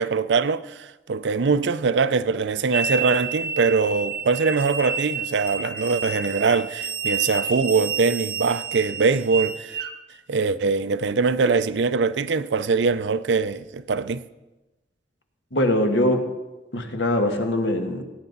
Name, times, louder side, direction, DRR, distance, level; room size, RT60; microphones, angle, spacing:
voice 1, 0.0-9.8 10.3-14.3, right 4 dB, 75° right, 0.5 m, -22 dB
sound 1, 2.7-9.9, right 6 dB, 55° right, 0.8 m, -30 dB
voice 2, 15.5-16.3 16.7-18.0, left 1 dB, 85° left, 1.5 m, -22 dB
17.5 x 9.4 x 4.0 m
head